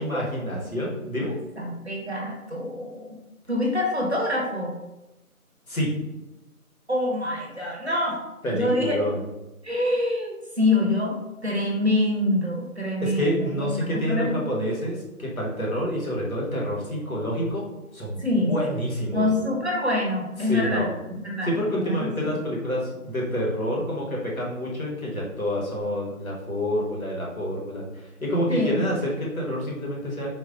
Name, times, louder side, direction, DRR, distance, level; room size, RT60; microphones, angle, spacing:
voice 1, 0.0-1.3 5.7-5.9 8.4-9.2 13.0-17.6 17.9-18.2 18.5-19.3 20.4-20.9 21.4-30.3, equal, 65° left, -3 dB, 1.2 m, -28 dB
voice 2, 1.6-3.2 3.5-4.8 6.9-8.2 8.5-8.9 9.6-11.2 11.4-14.4 18.2-18.6 19.1-22.4 28.5-28.8, left 1 dB, 50° right, -2 dB, 0.7 m, -26 dB
3.9 x 2.3 x 2.5 m, 1.0 s
figure-of-eight pair, 170°, 45 cm